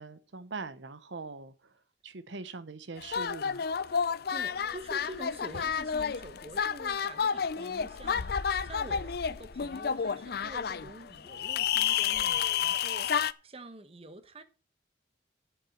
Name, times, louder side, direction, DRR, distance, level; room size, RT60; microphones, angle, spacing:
voice 1, 0.0-1.7 2.0-3.6, right 3 dB, 85° right, 0.9 m, -42 dB
sound 1, 3.0-13.3, left 7 dB, 60° left, 0.5 m, -31 dB
voice 2, 3.9-14.4, right 1 dB, 30° right, 1.1 m, -47 dB
8.3 x 7.6 x 7.1 m
head